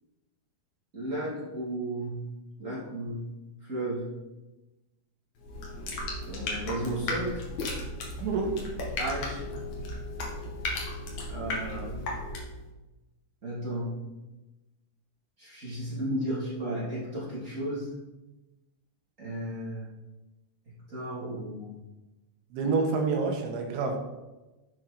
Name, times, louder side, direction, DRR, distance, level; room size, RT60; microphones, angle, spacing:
voice 1, 0.9-2.2 2.6-3.2 3.7-4.1 6.3-7.3 9.0-9.4 11.3-12.0 13.4-14.0 15.4-17.9 19.2-19.9 20.7-21.7, right 1 dB, 20° right, -8 dB, 2.2 m, -34 dB
sound 1, 5.4-12.6, left 1 dB, 65° left, 1.7 m, -35 dB
voice 2, 8.2-8.5 22.5-24.0, right 4 dB, 70° right, 2 dB, 3.3 m, -27 dB
11.0 x 6.6 x 4.2 m, 1.1 s
omnidirectional pair, 5.8 m